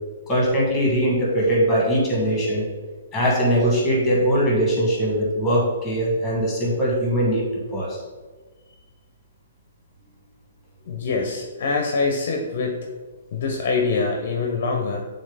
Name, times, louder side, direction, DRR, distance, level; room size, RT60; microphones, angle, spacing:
voice 1, 0.3-2.6 3.1-7.4 7.7-8.0, equal, 5° left, -3 dB, 1.5 m, -21 dB
voice 2, 10.8-12.8 13.3-15.0, left 4 dB, 40° left, 2 dB, 0.7 m, -24 dB
8.7 x 3.8 x 3.4 m, 1.4 s
hypercardioid pair, 180°, 0 cm